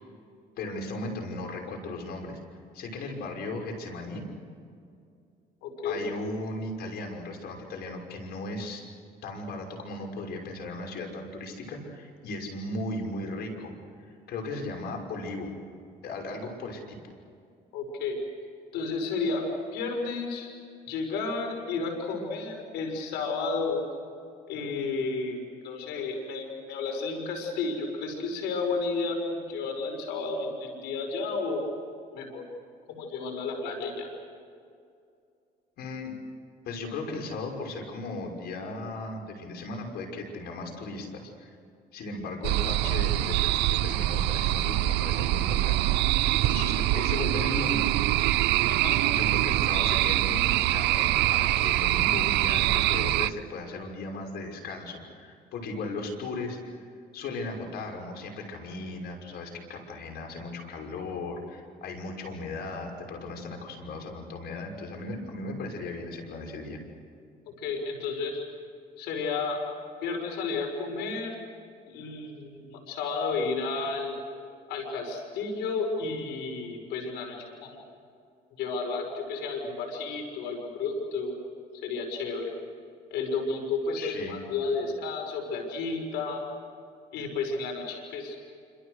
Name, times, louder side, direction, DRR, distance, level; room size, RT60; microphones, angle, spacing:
voice 1, 0.6-2.4 2.7-4.3 5.8-8.8 9.2-13.7 14.0-15.5 16.0-17.0 35.8-36.1 36.6-41.6 41.9-45.9 46.5-47.9 49.1-56.7 57.1-66.8 84.0-84.4, left 2 dB, 70° left, 2 dB, 5.9 m, -36 dB
voice 2, 5.6-6.0 17.7-18.2 18.7-20.5 20.9-23.8 24.5-31.6 32.1-32.4 32.9-34.1 48.7-49.0 67.6-68.4 69.0-69.6 70.0-71.3 71.9-74.2 74.7-77.8 78.6-81.3 81.8-82.5 83.1-86.4 87.1-88.4, left 4 dB, 90° left, 2 dB, 5.8 m, -32 dB
sound 1, 42.4-53.3, right 16 dB, 85° right, 0.7 m, -24 dB
28.0 x 26.5 x 6.6 m, 2.4 s
cardioid pair, 110°, 17 cm